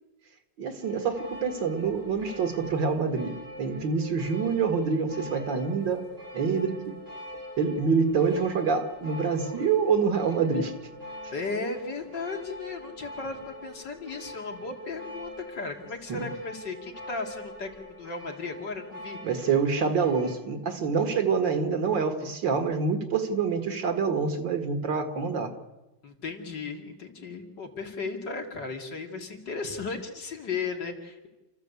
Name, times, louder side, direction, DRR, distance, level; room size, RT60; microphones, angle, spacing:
voice 1, 0.6-6.1 6.3-6.8 7.6-10.7 16.1-16.3 19.2-25.5, right 5 dB, 90° right, 8 dB, 2.5 m, -26 dB
sound 1, 0.8-20.3, left 1 dB, 40° right, 7.1 m, -44 dB
voice 2, 11.3-19.2 26.0-31.3, left 4 dB, 75° left, 2 dB, 3.2 m, -35 dB
28.5 x 14.0 x 8.3 m, 1.0 s
omnidirectional pair, 1.9 m